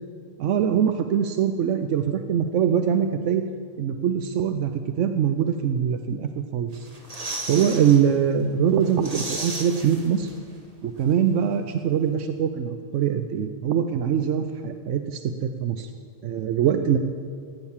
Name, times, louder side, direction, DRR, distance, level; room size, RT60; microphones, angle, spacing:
voice 1, 0.4-3.4 3.8-6.9 7.5-10.3 10.8-15.9 16.2-17.0, right 8 dB, 85° right, 8 dB, 1.0 m, -23 dB
sound 1, 6.7-8.0 8.4-8.5 8.8-10.6 10.8-10.9, right 2 dB, 30° right, 1.5 m, -34 dB
15.0 x 9.9 x 7.2 m, 2.2 s
omnidirectional pair, 1.2 m